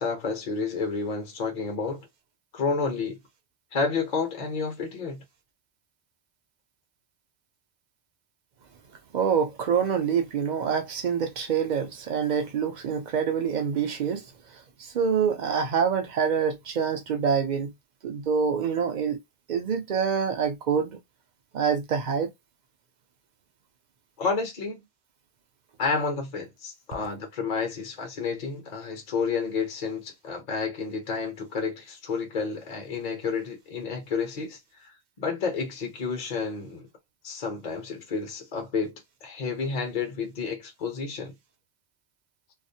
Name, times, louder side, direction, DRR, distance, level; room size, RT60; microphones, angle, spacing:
voice 1, 0.0-2.1 2.5-3.2 3.7-5.2 24.2-24.8 25.8-36.8 37.2-38.9 39.2-41.3, left 5 dB, 45° left, 0.7 m, -30 dB
voice 2, 9.1-17.7 18.0-19.2 19.5-21.0 21.5-22.3, right 6 dB, 55° right, 0.5 m, -26 dB
2.3 x 2.0 x 2.7 m
omnidirectional pair, 1.2 m